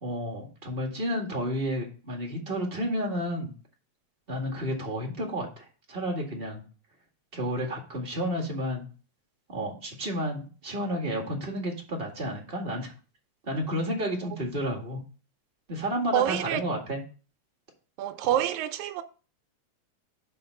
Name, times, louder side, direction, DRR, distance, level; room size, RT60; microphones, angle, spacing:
voice 1, 0.0-3.5 4.3-6.6 7.3-8.9 9.5-12.9 13.4-15.0 15.7-17.0, equal, 25° right, 1.6 m, -31 dB
voice 2, 16.1-16.6 18.0-19.0, right 12 dB, 85° right, 2.0 m, -27 dB
6.5 x 4.3 x 6.5 m
omnidirectional pair, 3.4 m